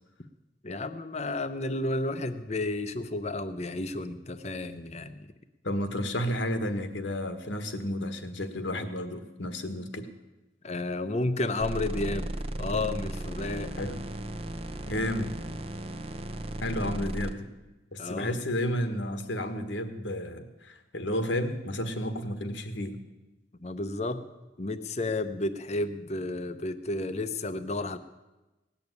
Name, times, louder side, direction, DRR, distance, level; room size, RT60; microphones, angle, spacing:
voice 1, 0.6-5.3 10.6-12.3 12.6-13.7 18.0-18.3 23.6-24.2 24.6-28.0, left 2 dB, 35° left, 11 dB, 0.7 m, -32 dB
voice 2, 5.6-10.1 13.8-14.0 14.9-15.4 16.6-17.5 17.9-23.0, left 1 dB, 75° left, 8 dB, 1.5 m, -32 dB
sound 1, 11.6-17.3, right 1 dB, 30° right, 0.8 m, -35 dB
18.0 x 7.0 x 9.4 m, 1.1 s
head